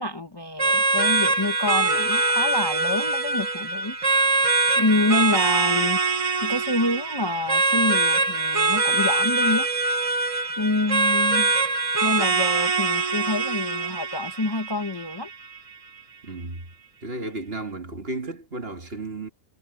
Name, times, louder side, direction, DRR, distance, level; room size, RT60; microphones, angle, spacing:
voice 1, 0.0-3.9 4.8-6.0 6.4-9.7 10.6-11.5 12.0-15.3, left 2 dB, 20° left, 0.9 m, -27 dB
sound 1, 0.6-15.6, right 3 dB, 30° right, 0.9 m, -23 dB
voice 2, 16.2-16.6 17.0-19.3, right 2 dB, 45° right, 2.2 m, -33 dB
omnidirectional pair, 1.4 m